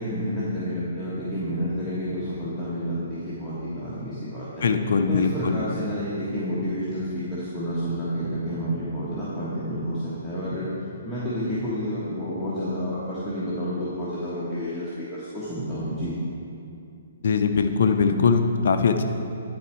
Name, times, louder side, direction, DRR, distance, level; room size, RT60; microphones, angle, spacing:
voice 1, 0.0-4.7 5.1-10.7 11.0-16.1, equal, 5° left, -13 dB, 1.4 m, -30 dB
voice 2, 4.6-5.6 17.2-19.0, left 5 dB, 60° left, 6 dB, 0.5 m, -21 dB
10.5 x 4.3 x 4.6 m, 2.6 s
figure-of-eight pair, 125°, 0 cm